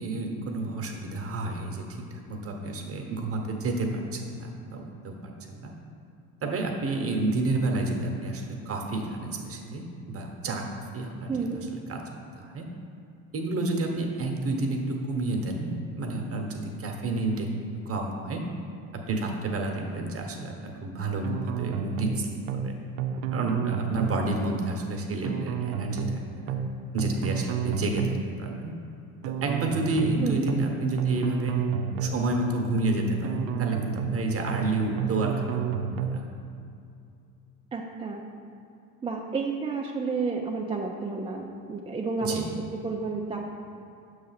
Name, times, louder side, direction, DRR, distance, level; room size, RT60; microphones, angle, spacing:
voice 1, 0.0-1.8 2.1-5.7 6.4-11.5 11.9-12.0 12.3-12.6 13.3-17.5 17.9-18.4 18.9-22.7 23.3-26.5 26.9-28.7 29.4-31.6 32.0-35.8 36.1-36.2 42.2-42.5, right 2 dB, 35° right, 2 dB, 1.0 m, -30 dB
sound 1, 21.2-22.2 22.5-22.7 23.0-24.2 25.2-26.2 26.5-26.7 27.0-28.2 29.2-30.2 30.5-30.7 31.0-32.2 33.2-34.2 34.5-34.7 35.0-36.2, right 7 dB, 85° right, 0.5 m, -30 dB
voice 2, 37.7-38.2 39.0-42.5 42.8-43.5, right 4 dB, 15° right, -1 dB, 0.3 m, -31 dB
6.4 x 3.2 x 5.7 m, 2.5 s
supercardioid pair, 90°, 41 cm